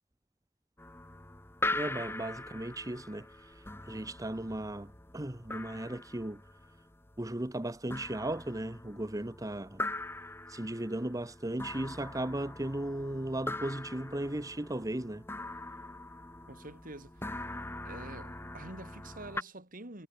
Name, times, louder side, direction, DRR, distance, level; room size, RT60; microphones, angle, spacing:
sound 1, 0.8-19.4, left 2 dB, 10° left, 1.3 m, -42 dB
voice 1, 1.7-6.4 7.2-9.8 10.5-15.2, right 1 dB, 20° right, 1.1 m, -36 dB
voice 2, 16.5-17.5 17.8-20.1, right 2 dB, 45° right, 5.1 m, -47 dB
head